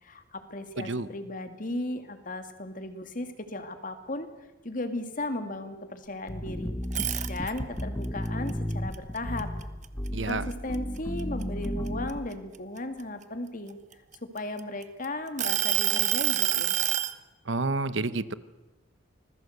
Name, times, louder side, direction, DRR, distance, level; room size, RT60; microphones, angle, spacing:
voice 1, 0.0-4.3 4.6-9.5 10.2-13.8 14.2-16.8, left 1 dB, 40° left, 8 dB, 2.3 m, -36 dB
voice 2, 0.8-1.1 10.1-10.4 17.5-18.3, right 3 dB, 65° right, 15 dB, 1.0 m, -29 dB
sound 1, 6.3-12.3, equal, 15° left, 1.0 m, -33 dB
sound 2, 6.8-7.8 8.3-10.1 10.5-10.8 11.2-13.0 13.7-14.8 15.4-17.1, right 12 dB, 40° right, 1.1 m, -27 dB
26.0 x 20.5 x 8.0 m, 1.0 s
head